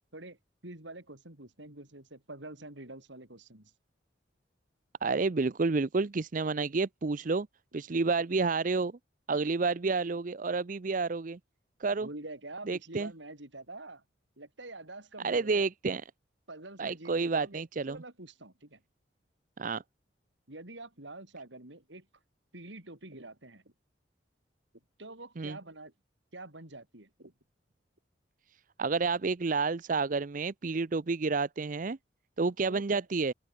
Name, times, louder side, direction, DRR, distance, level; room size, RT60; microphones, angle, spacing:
voice 1, 0.6-3.7 12.0-14.0 14.4-15.6 16.5-18.8 20.5-22.1 22.5-23.6 25.0-25.9 26.3-27.3 32.7-33.0, right 2 dB, 75° right, 5.1 m, -46 dB
voice 2, 5.0-7.5 7.7-8.9 9.3-11.4 11.8-12.1 12.7-13.1 15.2-16.0 16.8-18.0 19.6-19.8 25.4-25.6 28.8-32.0 32.4-33.3, right 4 dB, 45° right, 0.6 m, -30 dB
open air
head